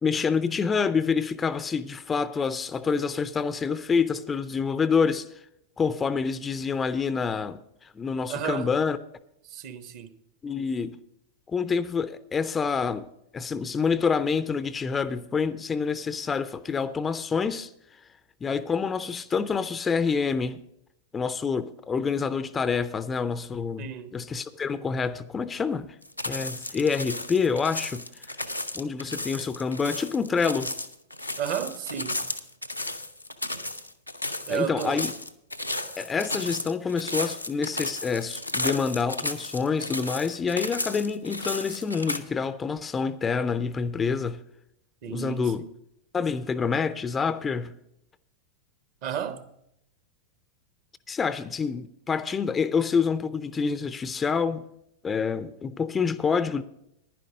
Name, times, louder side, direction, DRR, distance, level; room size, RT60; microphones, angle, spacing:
voice 1, 0.0-5.3 5.8-9.0 10.4-11.0 11.5-13.1 13.3-17.7 18.4-20.6 21.1-25.9 26.2-28.1 28.7-30.7 34.5-35.1 36.0-44.4 45.1-45.6 46.1-47.7 51.1-54.6 55.0-56.6, left 5 dB, 20° left, 0.5 m, -27 dB
voice 2, 8.3-8.7 9.5-10.1 23.8-24.2 31.4-32.2 34.5-35.0 45.0-45.7 49.0-49.4, right 9 dB, 45° right, 1.0 m, -32 dB
sound 1, 26.0-42.2, left 1 dB, 90° left, 0.7 m, -34 dB
11.0 x 10.5 x 5.0 m
figure-of-eight pair, 90°, 0 cm